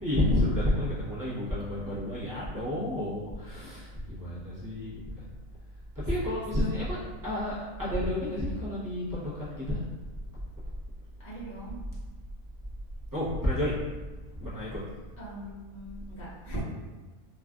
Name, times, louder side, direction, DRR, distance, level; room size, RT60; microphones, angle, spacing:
voice 1, 0.0-5.3 6.1-9.8 13.1-13.7 14.4-14.8, left 1 dB, 20° right, -11 dB, 0.5 m, -30 dB
voice 2, 6.0-6.6 11.2-11.8 15.2-16.6, right 1 dB, 35° left, -8 dB, 0.8 m, -41 dB
3.1 x 2.4 x 2.4 m, 1.3 s
omnidirectional pair, 1.6 m